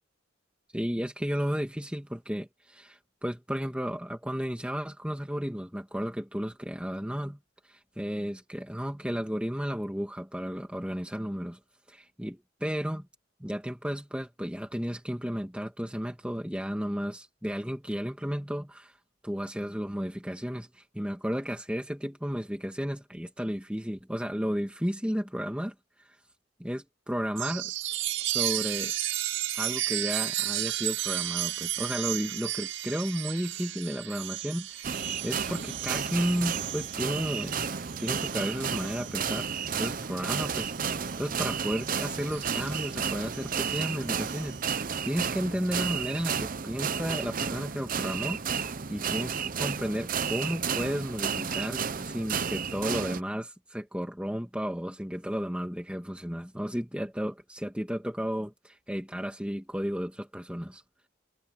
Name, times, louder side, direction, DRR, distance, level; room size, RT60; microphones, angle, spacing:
voice 1, 0.7-7.4 7.7-11.6 11.9-13.1 13.4-18.9 19.2-25.7 26.6-27.7 28.3-28.9 29.5-60.8, equal, 5° right, 2.3 m, -33 dB
Chime, 27.4-41.3 41.8-44.6, right 13 dB, 85° right, 7.3 m, -34 dB
sound 1, 34.8-53.2, right 6 dB, 45° right, 0.7 m, -32 dB
head